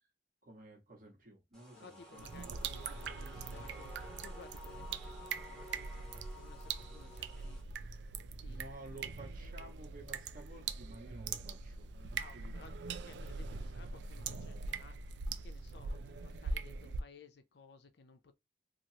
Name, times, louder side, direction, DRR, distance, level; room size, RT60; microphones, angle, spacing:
voice 1, 0.4-2.6 8.4-13.0, right 2 dB, 45° right, 1.2 m, -53 dB
sound 1, 1.5-7.6, left 1 dB, ahead, 1.0 m, -53 dB
voice 2, 1.7-8.8 12.2-15.1 15.4-18.4, left 4 dB, 60° left, 0.5 m, -59 dB
sound 2, 2.2-17.0, right 4 dB, 70° right, 0.4 m, -42 dB
3.0 x 2.4 x 2.7 m
head